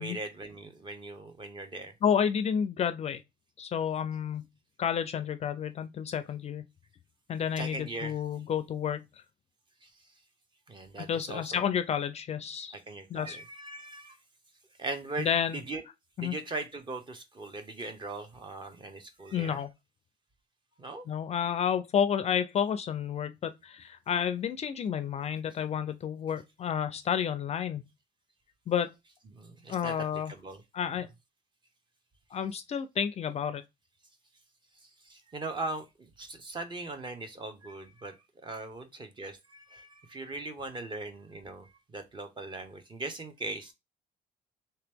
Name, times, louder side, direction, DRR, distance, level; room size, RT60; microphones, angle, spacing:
voice 1, 0.0-1.9 7.6-8.2 9.8-9.9 10.7-11.6 12.7-14.2 14.8-15.3 15.7-15.8 16.2-19.6 20.8-21.1 29.3-30.6 34.8-38.2 38.4-43.7, right 2 dB, 30° right, 0.8 m, -40 dB
voice 2, 2.0-3.2 3.6-4.5 4.8-6.7 7.3-9.1 11.0-12.8 13.1-13.4 15.2-15.6 16.2-16.3 19.3-19.7 21.1-27.8 28.7-28.9 29.7-30.3 30.7-31.1 32.3-33.6, left 8 dB, 40° left, 0.4 m, -30 dB
3.3 x 2.9 x 3.4 m
cardioid pair, 110°, 17 cm